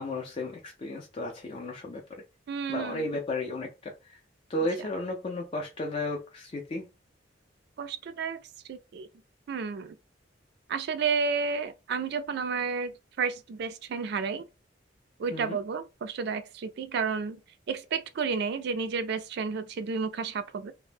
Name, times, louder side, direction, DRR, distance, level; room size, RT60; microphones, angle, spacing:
voice 1, 0.0-2.0 2.7-4.2 4.5-6.8 15.3-15.6, left 1 dB, 30° left, 0.4 m, -34 dB
voice 2, 2.5-3.1 7.8-8.4 8.7-9.1 9.5-10.0 10.7-14.4 15.2-17.4 17.7-20.7, right 5 dB, 60° right, 0.3 m, -31 dB
2.0 x 2.0 x 3.2 m
head